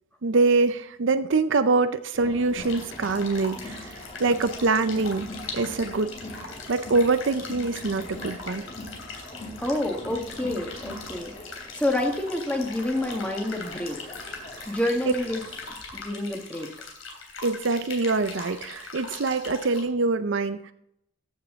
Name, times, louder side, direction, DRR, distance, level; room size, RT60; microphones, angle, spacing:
voice 1, 0.2-5.3 5.5-6.1 6.7-8.6 14.6-14.7 15.0-15.1 17.4-20.7, right 3 dB, 60° right, 11 dB, 0.5 m, -24 dB
Crowd, 2.1-15.7, left 1 dB, 30° left, 1.5 m, -42 dB
sound 1, 2.6-19.8, left 4 dB, 80° left, 3.3 m, -41 dB
voice 2, 9.6-14.2 14.6-15.4 15.9-16.7, left 1 dB, 5° left, 2 dB, 1.3 m, -28 dB
14.5 x 7.2 x 3.6 m, 0.78 s
head